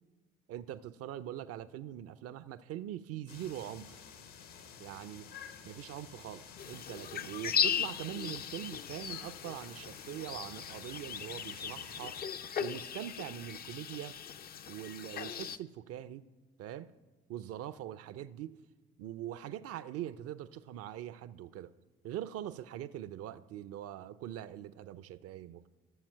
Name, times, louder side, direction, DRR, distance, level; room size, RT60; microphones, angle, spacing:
voice 1, 0.5-4.0 4.8-5.3 5.6-12.2 12.6-14.2 14.7-16.2 16.6-16.9 17.3-18.6 19.0-21.7 22.0-25.7, right 12 dB, 50° right, 0.5 m, -43 dB
sound 1, 3.3-12.2, left 7 dB, 65° left, 1.0 m, -52 dB
sound 2, 6.6-15.6, left 8 dB, 30° left, 0.4 m, -37 dB
14.0 x 7.2 x 4.4 m
figure-of-eight pair, 45°, 30 cm